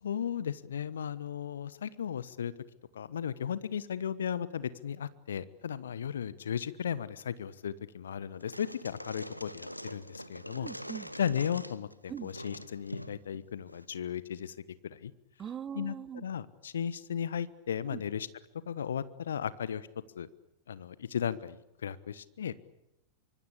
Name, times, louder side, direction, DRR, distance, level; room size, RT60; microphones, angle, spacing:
voice 1, 0.0-2.5 2.9-10.7 11.2-14.5 14.8-15.1 15.7-18.3 18.7-19.9 20.1-20.3 20.7-22.5, left 8 dB, 65° left, 17 dB, 1.2 m, -35 dB
sound 1, 8.3-13.9, equal, 90° left, 1.2 m, -44 dB
voice 2, 10.6-11.1 12.1-12.3 15.4-16.2 17.9-18.0, right 8 dB, 25° right, 20 dB, 1.0 m, -41 dB
25.5 x 24.5 x 8.5 m, 0.85 s
figure-of-eight pair, 90°, 0 cm